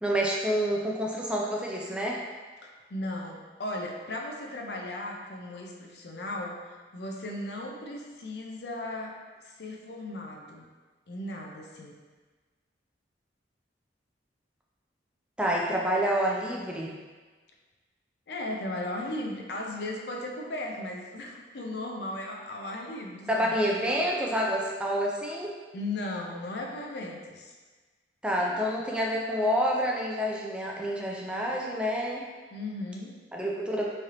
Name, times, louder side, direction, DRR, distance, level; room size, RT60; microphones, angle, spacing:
voice 1, 0.0-2.2 15.4-16.9 23.3-25.5 28.2-32.2 33.3-33.9, equal, 5° right, -3 dB, 0.3 m, -28 dB
voice 2, 2.6-9.1 9.4-10.6 11.1-11.9 18.3-23.6 23.8-24.0 25.7-27.5 32.5-33.2, left 1 dB, 65° left, 0 dB, 0.5 m, -36 dB
3.7 x 3.2 x 2.9 m, 1.4 s
head